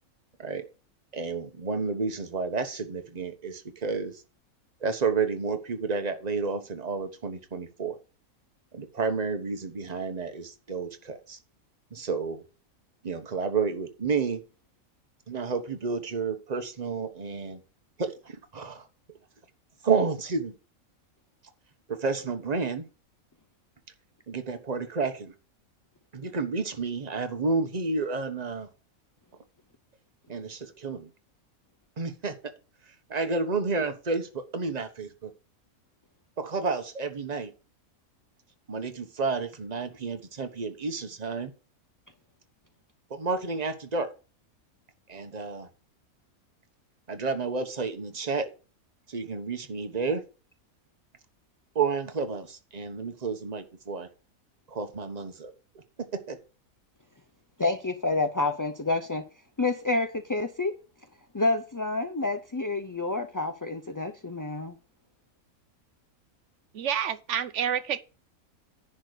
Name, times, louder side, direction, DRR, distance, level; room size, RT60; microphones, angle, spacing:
voice 1, 1.1-4.2 4.8-8.0 8.7-11.4 11.9-12.4 13.0-14.4 15.3-17.6 18.0-18.9 19.8-20.5 21.9-22.9 24.3-25.3 26.1-28.7 30.3-31.1 32.0-32.4 33.1-35.3 36.4-37.5 38.7-41.5 43.1-44.1 45.1-45.7 47.1-48.5 49.1-50.2 51.7-54.1 54.7-55.8 56.1-56.4, right 4 dB, 30° right, 1.2 m, -30 dB
voice 2, 57.6-59.2 59.6-60.7 61.3-64.8, left 3 dB, 30° left, 0.3 m, -28 dB
voice 3, 66.7-68.0, right 9 dB, 60° right, 1.0 m, -28 dB
10.5 x 4.4 x 6.7 m
omnidirectional pair, 1.5 m